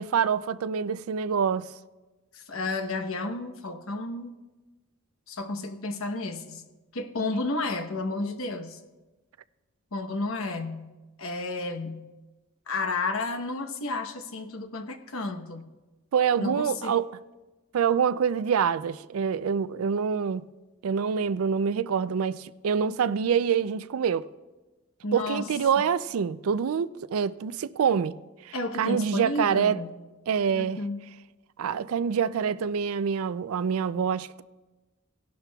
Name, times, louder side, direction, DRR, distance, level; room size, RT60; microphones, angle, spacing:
voice 1, 0.0-1.7 16.1-17.1 17.7-20.5 20.8-24.3 25.1-28.2 28.4-29.8 30.3-30.8 31.6-34.4, right 7 dB, 80° right, 0.4 m, -26 dB
voice 2, 2.3-4.3 5.3-6.6 6.9-8.8 9.9-10.9 11.2-12.1 12.7-15.6 16.4-17.0 25.0-25.5 28.5-29.9 30.5-31.1, left 2 dB, 75° left, 1.0 m, -32 dB
18.0 x 11.5 x 2.3 m
head